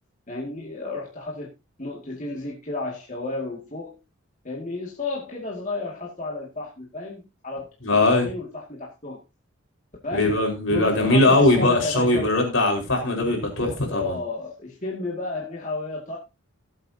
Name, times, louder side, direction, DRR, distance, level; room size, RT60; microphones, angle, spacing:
voice 1, 0.3-1.5 1.8-4.0 4.4-7.7 8.0-9.2 10.0-10.4 10.7-12.3 13.9-16.2, left 2 dB, 35° left, -3 dB, 2.2 m, -32 dB
voice 2, 7.8-8.3 10.1-14.1, left 2 dB, 65° left, 1 dB, 4.9 m, -20 dB
19.0 x 8.0 x 2.8 m, 0.27 s
head